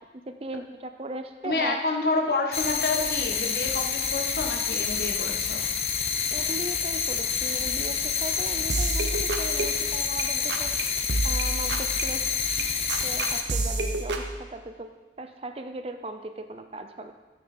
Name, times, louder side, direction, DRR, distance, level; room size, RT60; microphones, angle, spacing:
voice 1, 0.3-1.8 6.1-10.8 11.2-12.2 12.6-12.7 13.0-17.1, right 2 dB, 35° right, 8 dB, 0.6 m, -38 dB
voice 2, 1.4-5.6, left 3 dB, 60° left, 1 dB, 1.4 m, -28 dB
sound 1, 2.5-13.4, left 6 dB, 35° left, 0.7 m, -28 dB
sound 2, 8.7-10.2 10.5-10.8 11.1-14.3, right 2 dB, 85° right, 1.1 m, -30 dB
12.5 x 8.8 x 4.4 m, 1.2 s
head